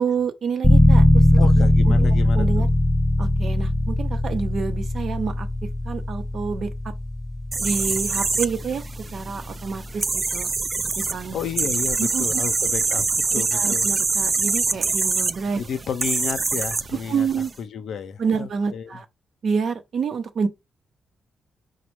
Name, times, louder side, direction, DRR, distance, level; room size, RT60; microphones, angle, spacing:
voice 1, 0.0-1.3 1.6-1.7 2.0-2.7 3.2-5.5 5.8-6.9 7.6-8.8 9.1-10.5 11.0-11.4 12.0-12.2 13.3-15.6 17.1-17.5 18.2-19.0 19.4-20.5, right 5 dB, 65° right, 0.8 m, -28 dB
sound 1, 0.6-11.2, left 1 dB, 15° left, 0.6 m, -20 dB
voice 2, 1.4-2.7 11.3-13.9 15.6-17.3 17.6-19.0, left 7 dB, 75° left, 0.6 m, -31 dB
sound 2, 7.5-17.5, right 4 dB, 40° right, 0.4 m, -25 dB
4.2 x 2.2 x 4.6 m
cardioid pair, 65°, 0 cm